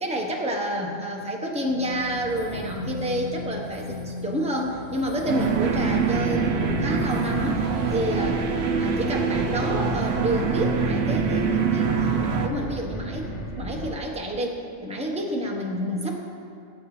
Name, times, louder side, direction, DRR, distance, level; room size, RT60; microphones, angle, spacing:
voice 1, 0.0-7.6 7.9-8.4 8.8-16.2, right 1 dB, 5° right, -1 dB, 1.1 m, -29 dB
sound 1, 1.7-8.1, left 3 dB, 80° left, 1.8 m, -36 dB
sound 2, 5.3-12.5, right 5 dB, 60° right, 0.9 m, -25 dB
sound 3, 5.4-13.9, equal, 35° left, 1.3 m, -34 dB
18.5 x 8.2 x 3.3 m, 2.4 s
omnidirectional pair, 1.3 m